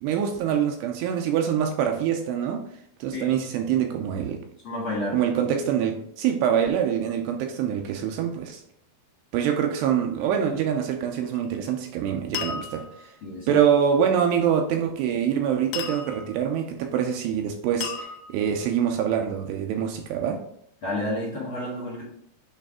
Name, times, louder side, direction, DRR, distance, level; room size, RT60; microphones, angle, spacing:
voice 1, 0.0-2.6 3.0-4.4 5.1-8.6 9.3-12.8 13.5-20.4, right 8 dB, 85° right, 4 dB, 2.6 m, -25 dB
voice 2, 4.6-5.2 13.2-13.5 20.8-22.0, left 1 dB, 60° left, -5 dB, 1.3 m, -30 dB
sound 1, 11.3-11.7 12.3-13.1 15.7-16.4 17.8-18.6, left 7 dB, 85° left, 1.9 m, -34 dB
8.4 x 3.3 x 3.5 m, 0.69 s
omnidirectional pair, 5.1 m